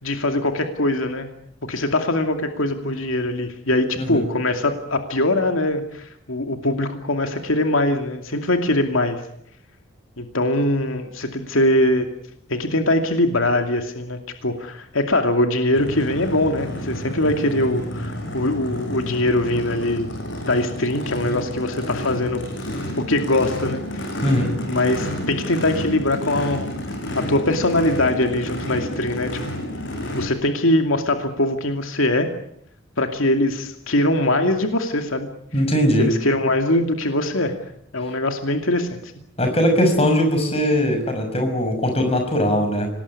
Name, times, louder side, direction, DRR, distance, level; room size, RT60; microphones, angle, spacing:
voice 1, 0.0-1.3 1.6-9.2 10.2-12.1 12.5-20.1 20.4-22.4 23.0-24.1 24.7-26.7 27.1-29.4 30.1-32.3 33.0-35.3 36.0-37.5 37.9-39.1, left 1 dB, 80° left, 5 dB, 2.5 m, -22 dB
voice 2, 4.0-4.3 24.2-24.5 35.5-36.1 39.4-42.9, equal, 30° left, 5 dB, 6.0 m, -20 dB
Race car auto racing / Idling / Accelerating revving vroom, 15.8-30.3, equal, 65° left, 6.7 m, -30 dB
26.0 x 19.5 x 9.8 m, 0.72 s
head